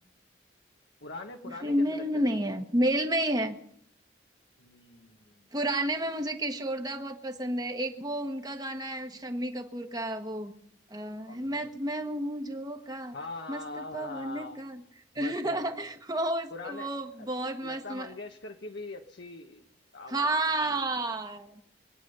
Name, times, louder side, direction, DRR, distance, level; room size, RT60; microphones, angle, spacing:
voice 1, 1.0-2.4 4.6-5.4 11.3-11.6 13.1-14.6 15.2-15.9 16.5-16.9 17.2-17.3 17.6-19.7 19.9-20.3 20.6-20.7, left 2 dB, 75° left, 3 dB, 1.4 m, -42 dB
voice 2, 1.6-3.6 5.5-10.5 10.9-13.1 13.5-14.8 15.1-18.1 20.1-21.5, right 1 dB, 20° right, 5 dB, 1.4 m, -31 dB
25.5 x 9.8 x 5.6 m, 0.68 s
head